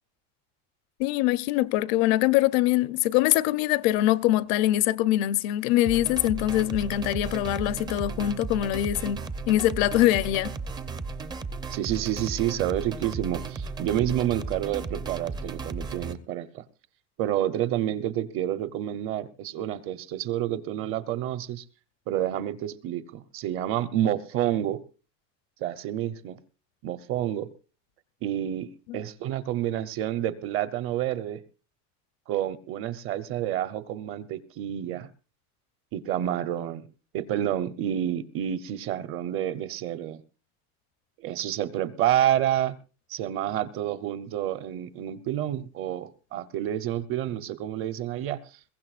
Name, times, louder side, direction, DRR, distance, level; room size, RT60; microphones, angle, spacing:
voice 1, 1.0-10.5 28.9-29.0, left 14 dB, 60° left, 0.7 m, -23 dB
sound 1, 5.8-16.1, right 4 dB, 10° right, 0.6 m, -35 dB
voice 2, 11.7-16.6 17.2-21.6 22.1-24.8 25.6-26.4 26.8-27.5 28.2-31.4 32.3-35.1 35.9-36.9 37.1-40.2 41.2-42.8 43.1-48.4, right 12 dB, 35° right, 0.8 m, -29 dB
22.0 x 16.5 x 2.5 m
cardioid pair, 175°, 36 cm